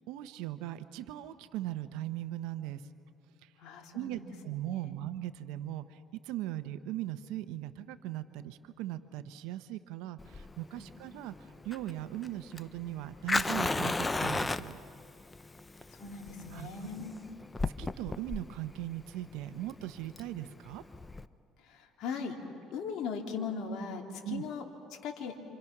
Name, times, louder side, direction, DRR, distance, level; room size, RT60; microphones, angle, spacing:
voice 1, 0.0-2.8 3.4-3.5 3.9-6.0 6.2-11.3 11.6-14.8 16.5-16.7 17.8-20.8 24.2-24.5, right 14 dB, 85° right, 11 dB, 0.9 m, -39 dB
voice 2, 3.6-4.3 4.7-5.0 10.7-10.9 16.0-17.2 21.6-22.4 22.7-24.6 25.0-25.4, left 5 dB, 65° left, 1 dB, 3.3 m, -39 dB
Fire, 10.2-21.2, left 2 dB, 15° left, 0.7 m, -35 dB
28.0 x 27.0 x 6.1 m, 2.4 s
cardioid pair, 100°, 0 cm